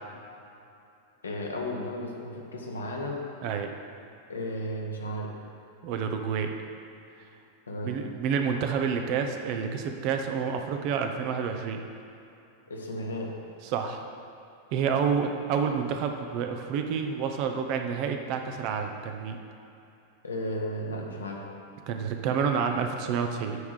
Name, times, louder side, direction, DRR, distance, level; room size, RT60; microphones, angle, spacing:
voice 1, 1.2-3.2 4.3-5.3 7.7-7.9 12.7-13.3 20.2-21.4, equal, 75° left, -1 dB, 1.2 m, -34 dB
voice 2, 5.8-6.5 7.8-11.8 13.6-14.0 14.7-19.4 21.9-23.6, right 6 dB, 45° right, 5 dB, 0.7 m, -29 dB
9.4 x 3.6 x 6.4 m, 2.8 s
figure-of-eight pair, 90°, 0 cm